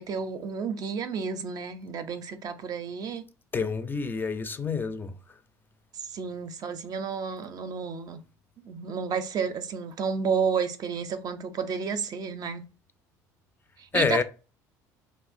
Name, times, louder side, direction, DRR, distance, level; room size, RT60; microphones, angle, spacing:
voice 1, 0.0-3.2 5.9-8.2 8.6-12.6 13.8-14.2, right 6 dB, 45° right, 0.5 m, -31 dB
voice 2, 3.5-5.4 13.9-14.2, left 5 dB, 25° left, 0.4 m, -28 dB
3.0 x 2.3 x 2.5 m
hypercardioid pair, 75°, 9 cm